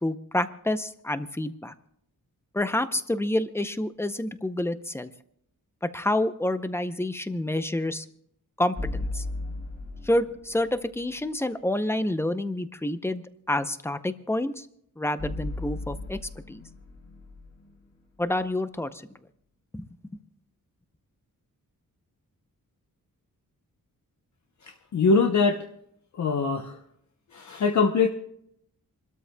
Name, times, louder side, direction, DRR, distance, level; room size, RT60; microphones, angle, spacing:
voice 1, 0.0-1.7 2.5-5.1 5.8-8.0 8.6-9.2 10.0-14.7 15.0-16.2 16.5-16.6 18.2-19.0 19.7-19.8, left 1 dB, 5° left, 11 dB, 0.6 m, -28 dB
sound 1, 8.8-10.9 15.2-18.4, left 2 dB, 30° left, 4.5 m, -36 dB
voice 2, 24.6-25.6 26.2-26.8 27.3-28.1, left 4 dB, 55° left, 4 dB, 0.8 m, -23 dB
29.0 x 13.0 x 2.2 m, 0.72 s
wide cardioid pair, 170°, 34 cm